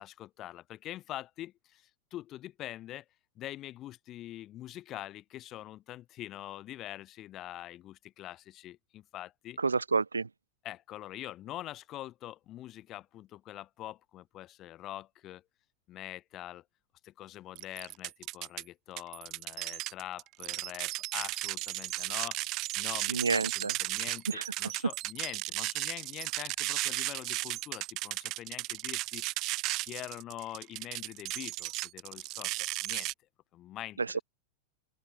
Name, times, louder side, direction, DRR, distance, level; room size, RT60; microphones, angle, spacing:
voice 1, 0.0-3.0 3.4-9.6 10.6-15.4 15.9-16.6 17.0-29.2 29.8-33.1 33.5-34.0, left 14 dB, 35° left, 7.3 m, -44 dB
voice 2, 9.6-10.3 23.1-23.7 24.3-24.5 34.0-34.2, right 4 dB, 75° right, 1.2 m, -29 dB
sound 1, 17.6-18.6 19.0-33.1, right 19 dB, 40° right, 1.5 m, -35 dB
open air
figure-of-eight pair, 90°, 0 cm